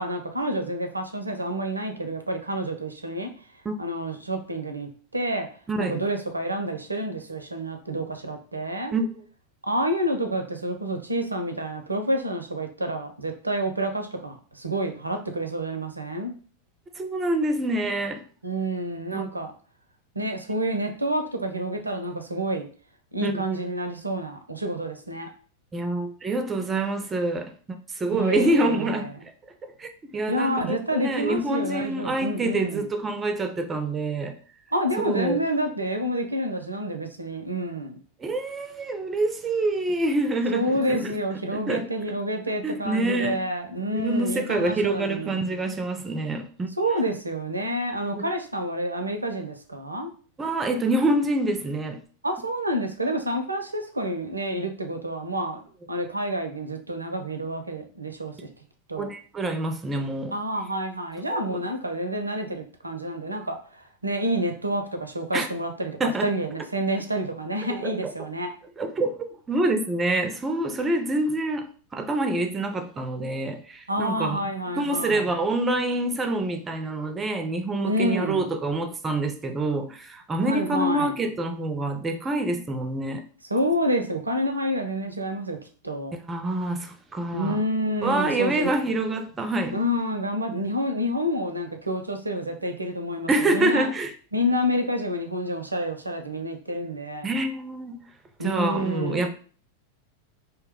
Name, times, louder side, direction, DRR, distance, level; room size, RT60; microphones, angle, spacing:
voice 1, 0.0-3.3 3.8-5.5 5.8-8.9 9.6-16.3 18.4-19.5 20.1-22.7 23.1-25.3 28.1-29.1 30.3-32.9 34.7-38.0 40.5-45.4 46.8-50.1 52.2-55.6 55.9-58.5 58.9-59.1 60.3-68.5 73.9-75.3 77.9-78.5 80.4-81.2 83.5-85.6 85.8-86.1 87.3-88.7 89.7-93.9 94.3-97.3 98.4-99.3, equal, 80° right, 0.4 m, -28 dB
voice 2, 17.0-18.2 19.1-19.2 23.2-23.3 25.7-29.1 29.6-34.4 35.0-35.4 38.2-41.2 41.5-41.9 42.6-43.4 43.9-46.7 48.1-48.2 50.4-52.0 59.0-60.3 61.3-61.4 65.3-65.5 66.0-66.3 67.8-68.1 68.8-69.2 69.5-71.7 71.9-74.4 74.8-83.2 86.1-87.6 88.0-89.8 90.5-90.7 93.3-94.1 97.2-98.0 98.4-99.3, right 2 dB, 15° right, 0.4 m, -26 dB
2.7 x 2.0 x 3.5 m
figure-of-eight pair, 90°, 0 cm